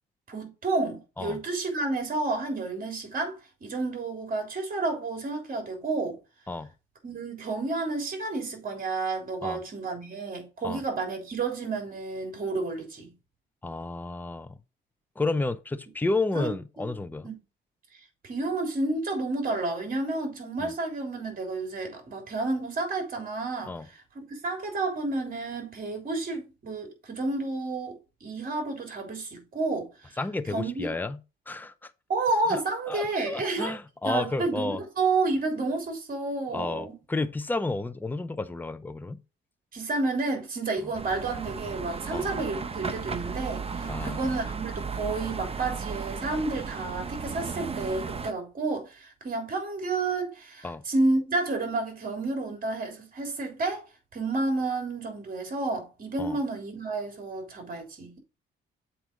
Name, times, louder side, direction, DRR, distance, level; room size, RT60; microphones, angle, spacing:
voice 1, 0.3-6.2 7.0-13.1 16.3-16.9 17.2-17.3 17.9-30.2 30.5-30.9 32.1-33.8 34.0-37.0 39.7-53.9 54.1-58.2, right 3 dB, 45° right, 3.4 m, -30 dB
voice 2, 13.6-14.6 15.2-17.3 20.6-20.7 23.7-23.9 30.2-31.2 31.5-31.9 32.5-32.6 32.9-34.8 36.5-39.2 42.1-42.3 43.9-44.2 50.6-50.8 56.2-56.4, left 3 dB, 10° left, 0.6 m, -31 dB
sound 1, 40.9-48.3, right 5 dB, 30° right, 0.8 m, -35 dB
7.8 x 4.3 x 5.0 m
cardioid pair, 90°, 20 cm